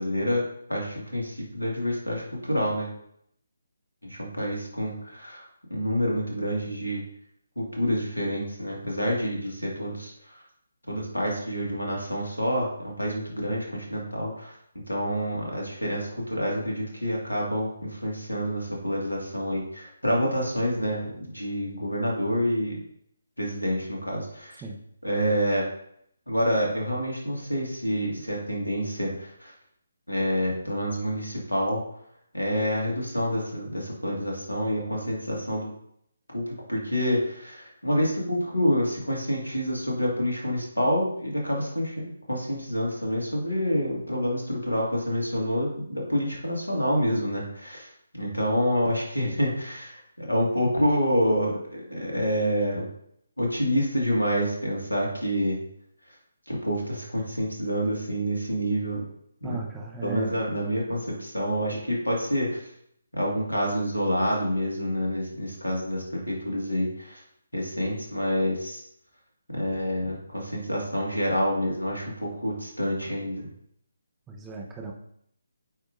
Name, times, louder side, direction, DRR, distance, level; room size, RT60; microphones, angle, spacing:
voice 1, 0.0-2.9 4.0-5.4 5.7-7.0 7.6-10.4 10.9-14.5 14.9-22.8 23.4-24.6 25.0-25.7 26.3-29.5 30.1-31.8 32.3-35.7 36.3-47.9 48.1-52.9 53.4-55.6 56.5-59.0 59.4-59.6 60.0-62.6 63.1-67.2 67.5-68.8 69.5-73.5, equal, 85° left, -2 dB, 2.1 m, -27 dB
voice 2, 59.4-60.4 74.3-74.9, right 3 dB, 10° right, 0 dB, 0.9 m, -36 dB
8.7 x 4.9 x 2.6 m, 0.71 s
figure-of-eight pair, 145°, 0 cm